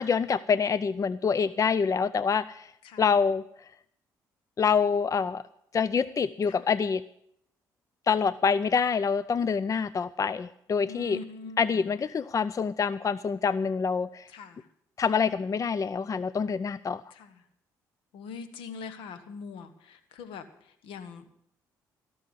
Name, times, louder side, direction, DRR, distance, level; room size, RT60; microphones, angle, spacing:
voice 1, 0.0-2.7 3.0-3.4 4.6-5.4 5.7-7.0 8.1-11.2 11.6-14.3 15.0-17.0, left 6 dB, 35° left, 17 dB, 0.5 m, -26 dB
voice 2, 10.9-11.8 14.3-14.6 17.2-17.3 18.1-20.4 20.8-21.3, left 5 dB, 70° left, 11 dB, 1.3 m, -42 dB
17.0 x 7.0 x 7.9 m, 0.71 s
hypercardioid pair, 50°, 9 cm